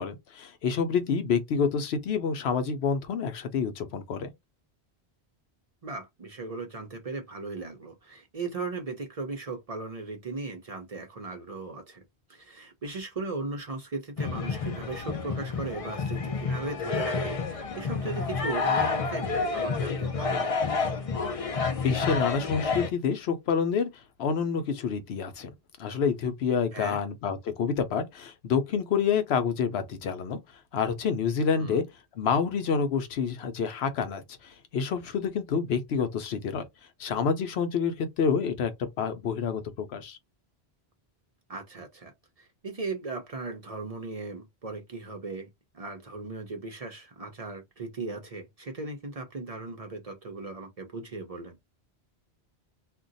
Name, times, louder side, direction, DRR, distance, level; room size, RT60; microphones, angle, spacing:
voice 1, 0.0-4.3 21.8-25.5 25.8-30.4 30.7-31.8 32.2-36.6 37.0-40.2, left 6 dB, 80° left, 0.9 m, -28 dB
voice 2, 5.8-12.0 12.3-20.8 26.7-27.0 31.6-31.8 41.5-51.7, right 3 dB, 45° right, 0.6 m, -37 dB
sound 1, 14.2-22.9, left 4 dB, 45° left, 0.5 m, -29 dB
2.4 x 2.2 x 3.9 m
omnidirectional pair, 1.1 m